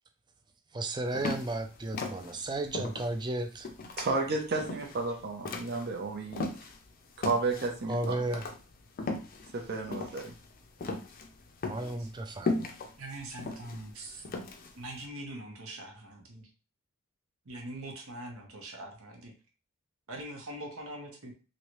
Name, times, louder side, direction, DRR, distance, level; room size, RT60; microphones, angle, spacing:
voice 1, 0.7-3.7 7.9-8.5 11.7-12.5, right 2 dB, 20° right, 7 dB, 0.4 m, -34 dB
sound 1, 1.1-6.8 7.2-15.0, left 3 dB, 40° left, 0.5 m, -37 dB
voice 2, 4.0-6.5 7.2-8.1 9.5-10.3, right 3 dB, 50° right, 2 dB, 0.7 m, -32 dB
voice 3, 13.0-14.2 14.7-16.5 17.5-19.3 20.1-21.3, right 1 dB, 75° right, 1 dB, 1.0 m, -43 dB
3.1 x 2.7 x 3.0 m, 0.35 s
head